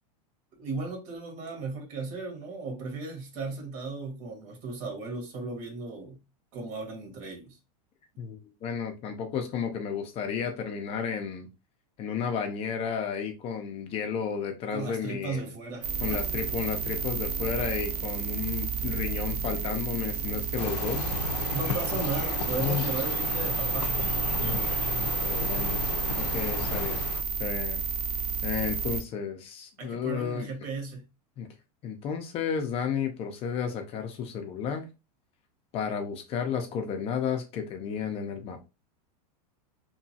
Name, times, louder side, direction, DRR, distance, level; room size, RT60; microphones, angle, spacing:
voice 1, 0.6-6.2 6.5-7.6 14.7-16.2 21.5-24.0 29.8-31.1, right 3 dB, 60° right, 1.5 m, -36 dB
voice 2, 8.2-11.5 12.0-15.4 16.0-21.1 22.6-23.0 24.4-25.9 26.2-27.1 27.4-27.8 28.4-30.5 31.4-31.5 31.8-34.9 35.7-38.6, left 7 dB, 30° left, 0.5 m, -32 dB
sound 1, 15.8-29.0, right 5 dB, 75° right, 0.7 m, -31 dB
sound 2, 20.6-27.2, left 7 dB, 85° left, 0.4 m, -35 dB
3.0 x 2.2 x 2.7 m
supercardioid pair, 140°, 20 cm